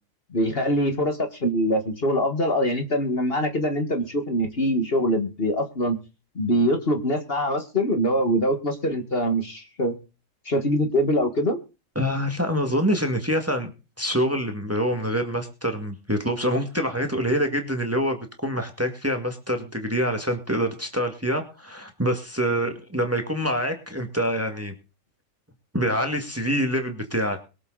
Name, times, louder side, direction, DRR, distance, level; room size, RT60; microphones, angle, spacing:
voice 1, 0.3-6.0 6.4-10.0 10.5-11.6, equal, 45° left, 6 dB, 2.0 m, -23 dB
voice 2, 12.0-13.7 14.0-24.7 25.7-27.4, equal, 10° right, 5 dB, 2.0 m, -25 dB
22.5 x 7.7 x 4.0 m, 0.32 s
omnidirectional pair, 1.5 m